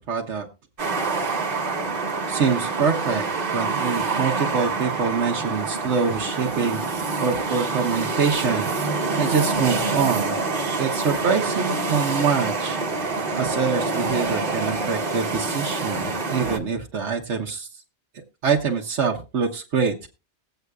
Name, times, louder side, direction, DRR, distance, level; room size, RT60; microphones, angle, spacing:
voice 1, 0.1-0.5 2.3-3.2 3.5-10.4 10.8-17.7 18.1-19.9, right 5 dB, 85° right, 0 dB, 1.3 m, -25 dB
sound 1, 0.8-16.6, right 3 dB, 50° right, 1.3 m, -26 dB
21.0 x 8.0 x 2.3 m, 0.29 s
omnidirectional pair, 1.2 m